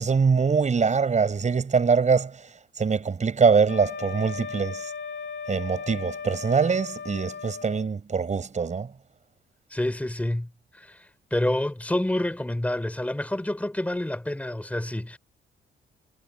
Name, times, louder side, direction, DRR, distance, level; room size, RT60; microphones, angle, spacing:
voice 1, 0.0-2.4 2.8-4.9 5.5-8.9, right 5 dB, 35° right, 5.4 m, -23 dB
Wind instrument woodwind instrument, 3.6-7.9, left 6 dB, 60° left, 3.2 m, -37 dB
voice 2, 9.7-15.2, left 1 dB, 5° left, 4.0 m, -28 dB
cardioid pair, 90°, 20 cm